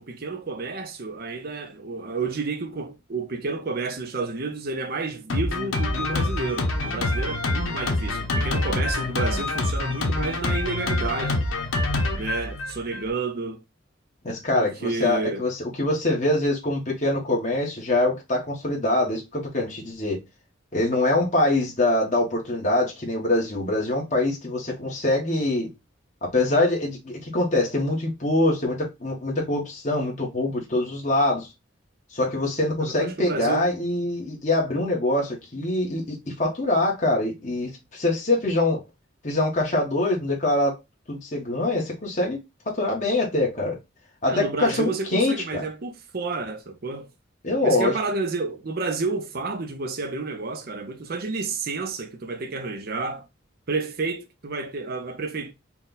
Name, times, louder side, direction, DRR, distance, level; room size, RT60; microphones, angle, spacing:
voice 1, 0.0-11.4 12.2-13.6 14.5-15.4 32.8-33.7 44.3-47.1 47.6-53.3 53.7-55.5, right 3 dB, 50° right, 0.6 m, -30 dB
Drum kit, 5.3-13.1, left 2 dB, 90° left, 0.9 m, -26 dB
voice 2, 14.2-20.2 20.7-25.7 26.2-31.5 32.1-38.8 39.2-40.8 41.1-42.4 42.7-43.8 44.2-45.6 47.4-47.9, left 2 dB, 35° left, 1.2 m, -24 dB
4.3 x 2.3 x 3.8 m
head